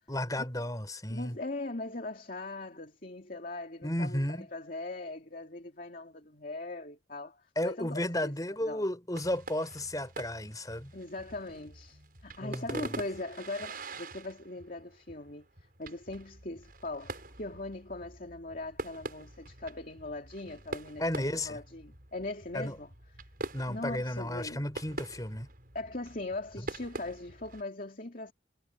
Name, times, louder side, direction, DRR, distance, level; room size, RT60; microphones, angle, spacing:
voice 1, 0.1-1.4 3.8-4.5 7.6-10.9 12.4-12.9 21.0-21.6 22.5-22.8 23.5-25.5, left 1 dB, 20° left, 4.6 m, -33 dB
voice 2, 1.1-8.3 8.6-8.8 10.9-15.5 15.8-22.9 23.7-24.7 25.7-28.3, left 2 dB, 45° left, 2.6 m, -40 dB
sound 1, 9.2-27.6, right 2 dB, 50° right, 7.4 m, -45 dB
head